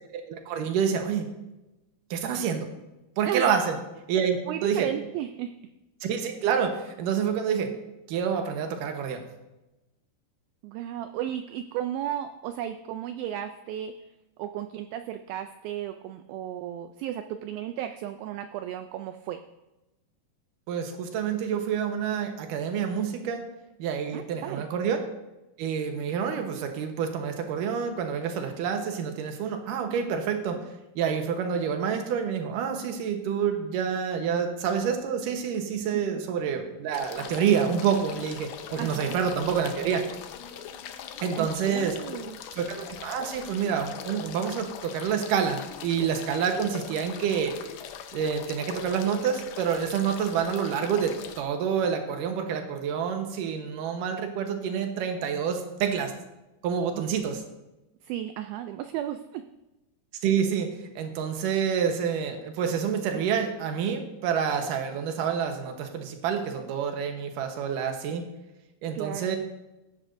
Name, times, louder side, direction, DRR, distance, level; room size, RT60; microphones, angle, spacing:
voice 1, 0.1-1.3 2.1-2.7 3.2-3.8 4.1-4.9 6.0-7.7 8.1-9.2 20.7-23.5 23.8-25.0 25.6-30.6 31.0-40.0 41.2-42.0 42.5-47.6 48.1-56.1 56.6-57.4 60.2-60.7 61.0-68.2 68.8-69.4, right 7 dB, 70° right, 5 dB, 2.3 m, -28 dB
voice 2, 3.3-3.6 4.5-5.5 10.6-13.9 14.4-19.4 24.1-24.6 35.9-36.2 38.8-39.2 41.4-42.4 57.2-57.3 58.0-59.4 68.9-69.4, right 11 dB, 90° right, 9 dB, 2.1 m, -34 dB
sound 1, 36.9-51.4, left 8 dB, 85° left, 1.8 m, -41 dB
15.5 x 10.5 x 2.6 m, 1.0 s
omnidirectional pair, 4.7 m